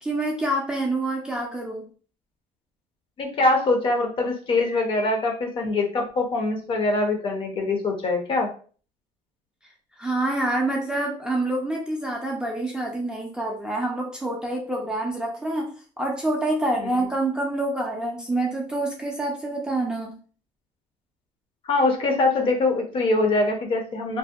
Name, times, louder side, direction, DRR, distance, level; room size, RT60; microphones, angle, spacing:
voice 1, 0.0-1.9 10.0-15.7 16.0-20.2, right 2 dB, 5° right, -1 dB, 0.4 m, -27 dB
voice 2, 3.2-8.5 21.7-24.2, left 2 dB, 40° left, 3 dB, 0.6 m, -23 dB
2.6 x 2.0 x 2.3 m, 0.41 s
cardioid pair, 135°, 14 cm